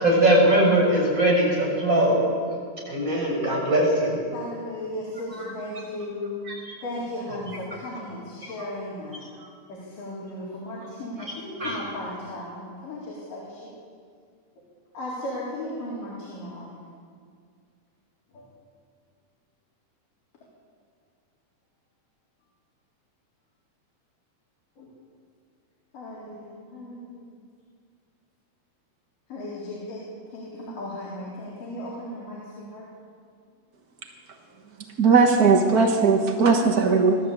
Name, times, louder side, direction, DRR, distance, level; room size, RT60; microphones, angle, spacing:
voice 1, 0.0-2.2 2.9-4.2 5.3-5.5 6.5-6.6 8.4-8.5 11.2-11.3 11.6-11.8, right 1 dB, 20° right, -2 dB, 6.3 m, -21 dB
voice 2, 4.3-6.3 6.8-9.2 9.7-13.7 14.9-16.7 18.3-18.5 24.8-24.9 25.9-27.0 29.3-30.0 30.3-32.9, left 1 dB, 70° left, -6 dB, 5.6 m, -36 dB
voice 3, 35.0-37.2, right 4 dB, 60° right, 3 dB, 0.9 m, -18 dB
24.5 x 13.0 x 8.4 m, 2.1 s
omnidirectional pair, 3.9 m